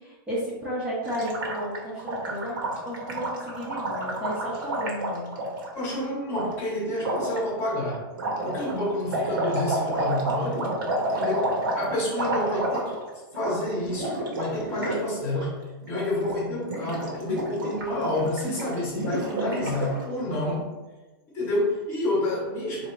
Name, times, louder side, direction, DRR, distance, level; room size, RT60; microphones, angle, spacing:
voice 1, 0.3-2.6 2.8-5.4, equal, 10° right, -9 dB, 0.8 m, -33 dB
Gurgling, 1.1-5.7 6.3-6.5 7.0-7.4 8.1-13.1 13.3-13.5 13.8-15.0 15.2-15.5 15.8-16.3 16.6-20.0, right 1 dB, 65° right, 1.3 m, -30 dB
voice 2, 5.7-8.1 8.4-10.8 11.1-12.9 13.3-20.7 21.3-22.9, left 1 dB, 20° left, -5 dB, 1.1 m, -29 dB
3.6 x 3.0 x 4.5 m, 1.2 s
supercardioid pair, 180°, 12 cm